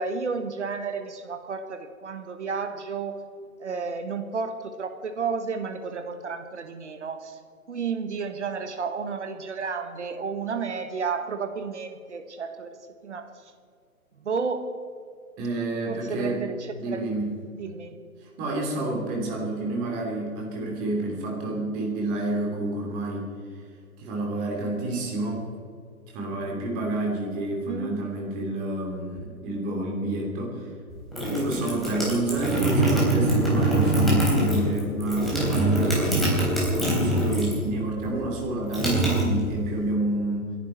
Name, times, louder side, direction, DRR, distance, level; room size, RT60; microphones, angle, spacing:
voice 1, 0.0-3.2 3.6-7.4 7.7-12.8 13.0-13.5 14.2-14.8 15.9-17.0 17.6-18.0 27.5-28.0 31.5-31.9, right 5 dB, 50° right, 7 dB, 1.5 m, -32 dB
voice 2, 15.4-16.5 16.8-17.4 18.2-23.6 24.0-25.5 26.1-30.7 31.3-36.4 36.7-40.5, right 2 dB, 20° right, -1 dB, 2.9 m, -29 dB
sound 1, 30.9-37.7 38.0-39.8, right 1 dB, ahead, 3.7 m, -23 dB
28.5 x 11.0 x 4.4 m, 2.2 s
figure-of-eight pair, 135°, 44 cm